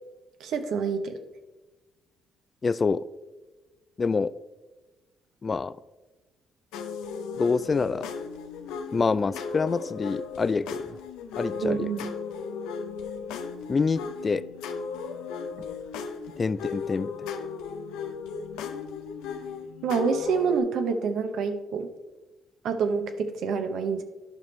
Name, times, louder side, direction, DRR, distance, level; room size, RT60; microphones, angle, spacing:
voice 1, 0.4-1.2 11.6-12.1 19.8-21.9 22.6-24.0, right 5 dB, 75° right, 7 dB, 0.8 m, -27 dB
voice 2, 2.6-3.0 4.0-4.3 5.4-5.7 7.4-8.1 8.9-11.0 11.3-11.9 13.7-14.4 16.4-17.1, left 4 dB, 35° left, 16 dB, 0.3 m, -26 dB
sound 1, 6.7-20.6, left 5 dB, 90° left, 0.6 m, -36 dB
11.5 x 5.2 x 3.2 m, 1.2 s
supercardioid pair, 70°, 0 cm